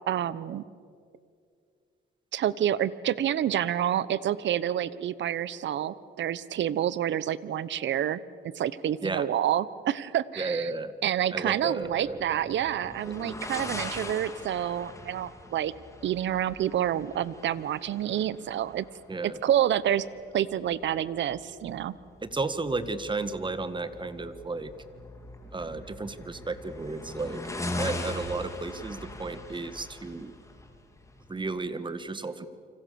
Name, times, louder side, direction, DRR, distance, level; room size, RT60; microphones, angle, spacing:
voice 1, 0.1-0.6 2.3-8.2 8.5-10.7 11.0-15.7 16.0-18.9 19.2-20.0 20.3-21.9, right 11 dB, 65° right, 18 dB, 1.0 m, -28 dB
voice 2, 10.4-10.9 11.3-12.2 13.1-13.2 19.1-19.4 22.2-24.7 25.5-27.5 27.8-30.3 31.3-32.5, right 3 dB, 25° right, 12 dB, 1.8 m, -33 dB
sound 1, 11.8-31.5, left 1 dB, 15° left, 3.4 m, -41 dB
28.5 x 26.0 x 7.0 m, 2.3 s
cardioid pair, 90°, 20 cm